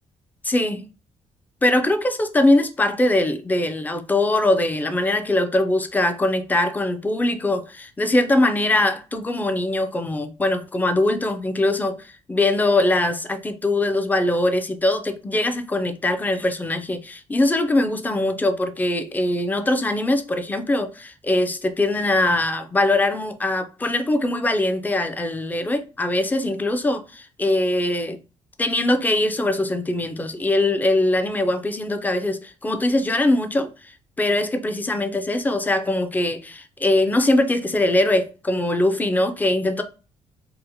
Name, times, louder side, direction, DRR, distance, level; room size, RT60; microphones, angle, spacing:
voice 1, 0.4-0.9 1.6-28.2 28.6-33.7 34.2-39.8, left 1 dB, 15° left, 0.5 m, -22 dB
2.8 x 2.1 x 3.9 m
cardioid pair, 95°, 12 cm